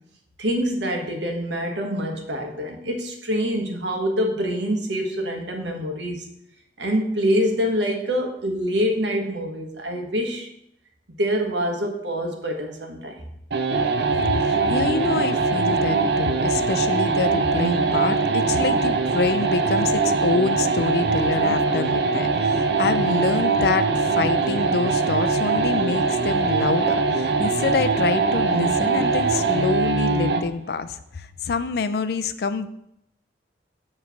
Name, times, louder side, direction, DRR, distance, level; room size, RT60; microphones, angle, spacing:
voice 1, 0.4-6.3 6.8-10.5 11.2-13.2, equal, 80° right, 2 dB, 1.2 m, -25 dB
sound 1, 13.5-30.5, right 4 dB, 65° right, 0.5 m, -22 dB
voice 2, 14.3-32.7, left 4 dB, 60° left, 12 dB, 0.4 m, -26 dB
7.1 x 3.2 x 5.7 m, 0.77 s
head